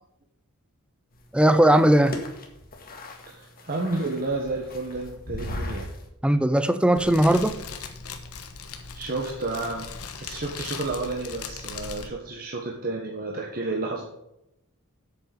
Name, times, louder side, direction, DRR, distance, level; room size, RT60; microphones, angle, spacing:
sound 1, 1.1-6.1, left 1 dB, 40° left, 1.9 m, -38 dB
voice 1, 1.3-2.2 6.2-7.6, right 1 dB, 5° right, 0.6 m, -18 dB
voice 2, 3.3-5.9 8.9-9.9 10.2-14.0, right 2 dB, 45° right, 1.4 m, -31 dB
Fire, 6.9-12.1, left 5 dB, 75° left, 1.3 m, -39 dB
8.3 x 7.0 x 7.0 m
head